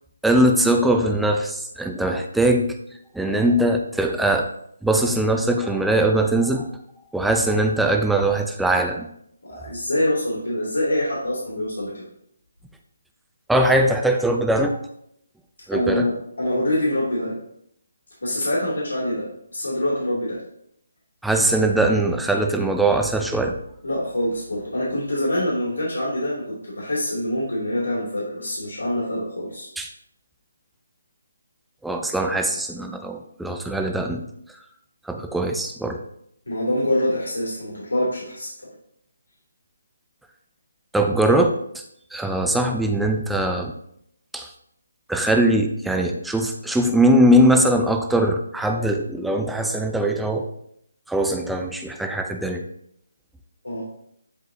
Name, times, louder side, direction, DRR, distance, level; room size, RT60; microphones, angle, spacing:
voice 1, 0.2-2.7 3.1-4.5 4.8-6.7 7.1-9.1 9.5-9.6 13.5-14.8 15.7-16.1 21.2-23.6 29.8-29.9 31.8-34.2 35.0-36.0 40.9-41.6 42.1-43.7 44.3-44.5 45.1-50.5 51.1-52.6, right 1 dB, ahead, 4 dB, 0.5 m, -21 dB
voice 2, 9.4-12.0 15.7-17.4 18.2-20.4 23.8-29.7 36.4-38.5 53.6-53.8, left 1 dB, 90° left, -6 dB, 2.7 m, -25 dB
10.5 x 3.8 x 2.8 m, 0.72 s
figure-of-eight pair, 155°, 0 cm